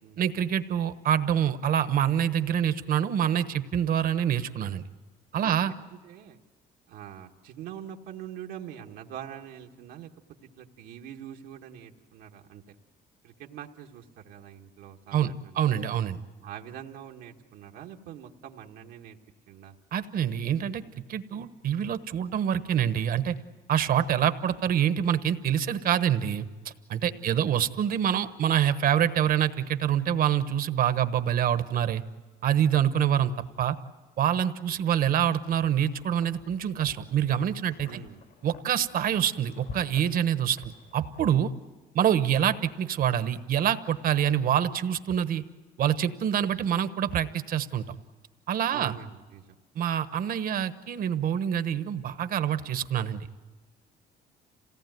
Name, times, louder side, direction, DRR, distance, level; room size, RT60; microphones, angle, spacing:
voice 1, 0.2-4.8 5.3-5.7 15.1-16.2 19.9-23.3 23.7-32.0 32.4-33.3 33.6-33.8 34.2-38.0 38.4-40.6 40.9-41.5 41.9-45.4 45.8-47.9 48.5-48.9 49.7-53.3, right 9 dB, 60° right, 12 dB, 1.1 m, -26 dB
voice 2, 5.9-6.4 6.9-10.1 10.6-12.7 13.2-15.8 16.4-19.2 19.5-19.7 27.1-27.4 37.8-38.2 48.7-49.5, right 10 dB, 85° right, 1 dB, 1.5 m, -44 dB
Wind, 35.2-41.6, left 5 dB, 70° left, 3.8 m, -50 dB
27.0 x 18.0 x 9.3 m, 1.3 s
cardioid pair, 110°, 17 cm